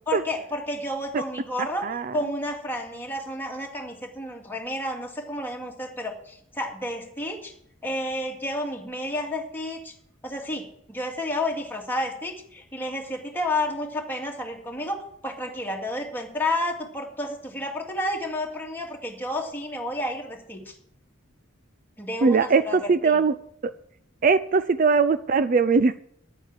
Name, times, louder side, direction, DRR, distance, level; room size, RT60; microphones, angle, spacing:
voice 1, 0.1-1.8 2.1-7.5 7.8-9.9 10.2-15.0 15.2-20.7 22.0-23.2, left 1 dB, 10° left, 0 dB, 2.2 m, -31 dB
voice 2, 1.8-2.2 22.2-23.3 24.2-26.0, right 4 dB, 45° right, 14 dB, 0.4 m, -20 dB
10.0 x 9.0 x 7.3 m, 0.70 s
head